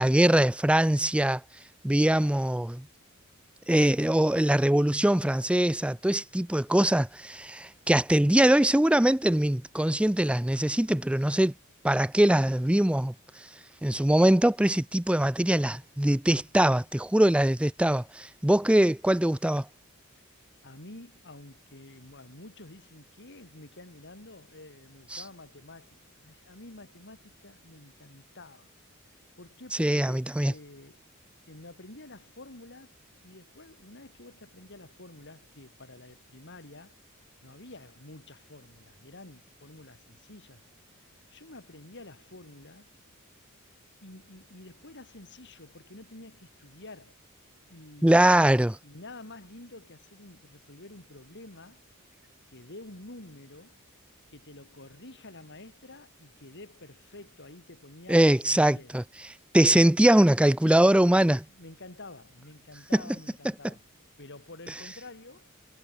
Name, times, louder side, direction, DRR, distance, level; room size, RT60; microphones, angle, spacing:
voice 1, 0.0-1.4 1.8-2.8 3.7-11.5 11.8-13.1 13.8-19.7 25.1-25.2 29.8-30.5 48.0-48.7 58.1-59.0 59.5-61.4 62.9-63.2, right 1 dB, 5° right, 0.5 m, -22 dB
voice 2, 20.6-28.7 29.4-31.0 31.5-32.9 33.2-37.0 37.4-40.6 41.3-42.9 44.0-47.2 47.7-48.5 48.8-51.8 52.5-53.8 54.3-58.9 61.3-63.8 64.2-65.5, left 2 dB, 55° left, 4.2 m, -49 dB
head